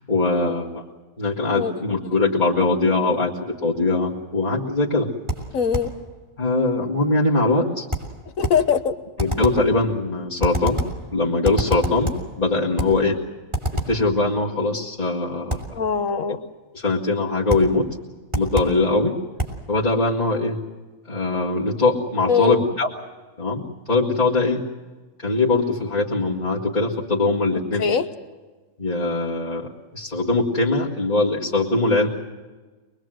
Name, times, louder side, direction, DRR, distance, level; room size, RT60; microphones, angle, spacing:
voice 1, 0.1-0.8 1.2-5.1 6.4-7.9 9.2-10.8 11.1-13.2 13.7-15.6 16.7-17.9 18.3-19.2 19.7-20.6 21.1-22.9 23.4-24.6 25.2-28.0 28.8-32.1, left 2 dB, 35° left, -7 dB, 2.2 m, -21 dB
sound 1, 5.3-6.0 7.9-8.7 9.2-9.7 10.4-11.1 11.4-12.3 12.8-13.0 13.5-14.0 15.5-15.8 17.5-17.8 18.3-18.8 19.4-19.7, equal, 20° right, 3.1 m, -27 dB
voice 2, 5.5-5.9 8.4-8.9 15.7-16.4 22.3-22.6 27.8-28.0, left 7 dB, 85° left, 10 dB, 1.6 m, -21 dB
24.0 x 22.0 x 7.8 m, 1.3 s
omnidirectional pair, 1.4 m